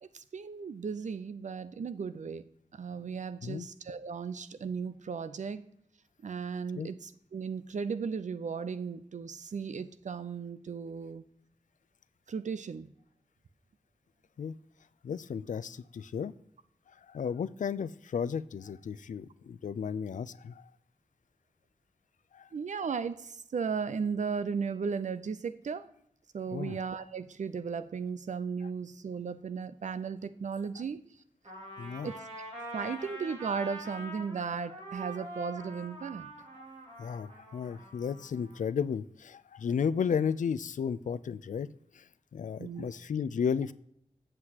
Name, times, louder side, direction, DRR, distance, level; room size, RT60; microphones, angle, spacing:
voice 1, 0.0-5.7 6.2-11.2 12.3-12.9 22.5-25.9 26.3-31.0 32.0-32.2 32.7-36.3 42.6-42.9, right 5 dB, 70° right, 13 dB, 0.5 m, -36 dB
voice 2, 15.0-16.3 16.9-20.7 22.3-22.5 26.5-26.8 31.8-32.1 37.0-41.7 41.9-43.7, left 7 dB, 85° left, 15 dB, 0.4 m, -34 dB
Trumpet, 31.4-38.6, right 1 dB, 55° right, 3.0 m, -44 dB
8.1 x 7.6 x 2.9 m, 0.73 s
wide cardioid pair, 100°, 13 cm